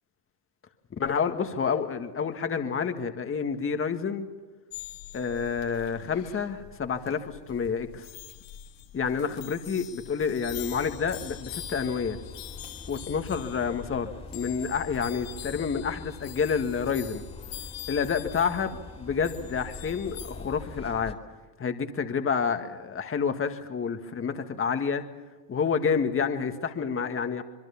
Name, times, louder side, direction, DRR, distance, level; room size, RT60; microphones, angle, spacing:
voice 1, 1.0-4.3 5.1-8.1 8.9-12.2 12.9-17.2 17.9-21.2 21.6-25.0 25.5-27.4, left 6 dB, 25° left, 7 dB, 1.9 m, -29 dB
sound 1, 4.7-21.0, left 11 dB, 65° left, 2.3 m, -44 dB
sound 2, 10.5-21.1, left 3 dB, 10° left, 2.7 m, -45 dB
26.0 x 22.5 x 7.2 m, 1.2 s
supercardioid pair, 105°, 46 cm